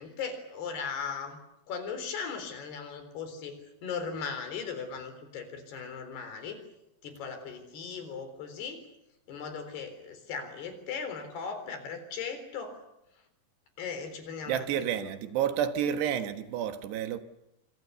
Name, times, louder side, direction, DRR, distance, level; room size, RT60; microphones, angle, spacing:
voice 1, 0.0-1.4 1.7-6.6 7.0-8.8 9.3-12.8 13.8-15.1, left 6 dB, 75° left, 5.9 m, -38 dB
voice 2, 14.5-17.2, right 9 dB, 85° right, 3.6 m, -30 dB
26.5 x 26.5 x 6.9 m
omnidirectional pair, 4.7 m